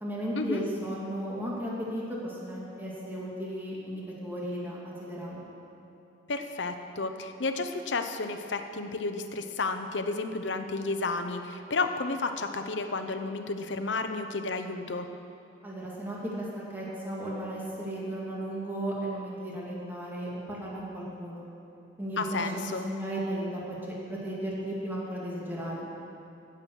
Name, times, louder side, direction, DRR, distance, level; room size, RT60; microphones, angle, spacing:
voice 1, 0.0-5.4 15.6-21.5 22.0-25.9, right 1 dB, 10° right, -5 dB, 2.0 m, -35 dB
voice 2, 6.3-15.1 22.2-22.9, left 3 dB, 70° left, 7 dB, 0.8 m, -32 dB
16.0 x 7.5 x 6.3 m, 2.8 s
head